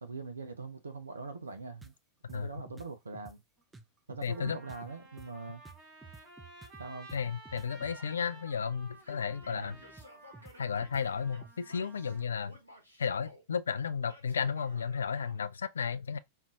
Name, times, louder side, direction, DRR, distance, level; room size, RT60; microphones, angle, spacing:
voice 1, 0.0-1.9 2.3-3.4 4.1-5.6 6.8-7.1 9.5-9.8, right 4 dB, 75° right, 0.5 m, -42 dB
sound 1, 1.8-1.9 2.3-3.4 3.7-8.0 9.4-11.5, right 3 dB, 10° right, 0.4 m, -53 dB
Trumpet, 3.6-3.7 4.3-12.2, right 1 dB, 30° right, 2.2 m, -54 dB
voice 2, 4.2-4.6 7.1-9.8 10.6-12.6 13.0-16.2, left 6 dB, 70° left, 0.3 m, -33 dB
Male speech man speaking / Yell, 7.9-8.5 8.9-12.2 12.5-13.4 14.1-15.4, left 1 dB, 90° right, 1.0 m, -55 dB
5.3 x 2.4 x 2.3 m
figure-of-eight pair, 90°, 0 cm